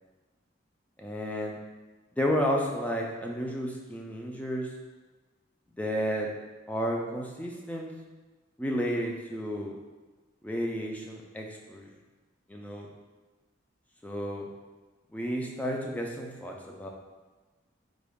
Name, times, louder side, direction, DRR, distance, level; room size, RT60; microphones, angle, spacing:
voice 1, 1.0-1.6 2.2-4.7 5.8-6.3 6.7-7.9 8.6-9.7 10.4-11.9 12.5-12.9 14.0-14.5 15.1-16.9, equal, 10° left, 0 dB, 0.3 m, -32 dB
3.7 x 2.3 x 3.5 m, 1.2 s
head